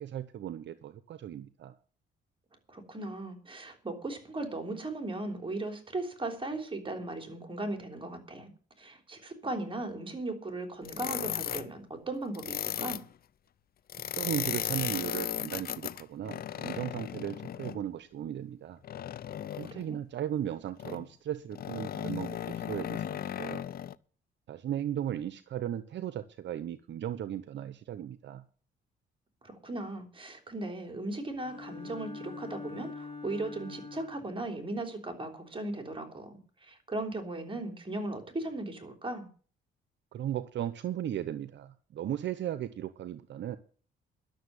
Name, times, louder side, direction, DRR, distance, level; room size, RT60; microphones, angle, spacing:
voice 1, 0.0-1.8 14.1-18.8 19.6-23.6 24.5-28.4 40.1-43.6, right 11 dB, 65° right, 14 dB, 0.8 m, -36 dB
voice 2, 2.7-8.5 8.8-13.0 19.6-20.0 29.4-39.3, right 2 dB, 25° right, 6 dB, 3.5 m, -37 dB
sound 1, 10.9-11.7 12.3-13.0 13.9-17.8 18.8-19.8 20.8-21.1 21.5-23.9, left 10 dB, 50° left, 0.6 m, -36 dB
Bowed string instrument, 31.4-34.5, left 4 dB, 25° left, 3.3 m, -43 dB
11.5 x 7.0 x 9.7 m, 0.42 s
cardioid pair, 90°, 20 cm